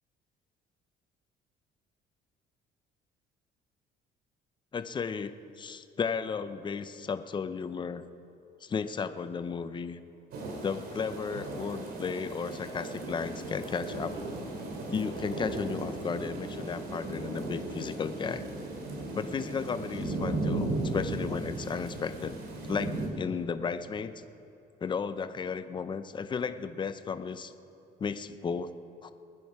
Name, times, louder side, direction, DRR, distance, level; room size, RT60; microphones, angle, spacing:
voice 1, 4.7-8.0 8.6-10.0 10.6-14.1 14.9-18.4 19.1-22.4 22.6-24.1 24.8-27.5 28.0-28.7 29.0-29.1, left 5 dB, 25° left, 12 dB, 0.6 m, -34 dB
sound 1, 10.3-23.1, right 2 dB, 70° right, 2.7 m, -36 dB
22.0 x 10.0 x 4.8 m, 2.8 s
cardioid pair, 110°, 17 cm